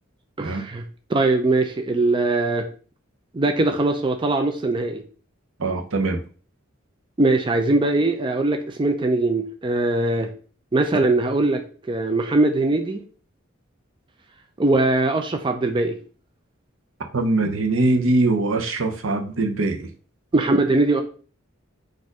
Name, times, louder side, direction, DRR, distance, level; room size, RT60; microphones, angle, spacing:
voice 1, 0.4-0.8 1.1-2.7 3.3-5.0 7.2-10.3 10.7-11.6 11.9-13.0 14.6-16.0 20.3-21.0, right 2 dB, 25° right, 5 dB, 0.4 m, -21 dB
voice 2, 5.6-6.2 17.1-19.9, right 2 dB, 85° right, 4 dB, 0.8 m, -22 dB
4.3 x 2.6 x 4.7 m, 0.40 s
head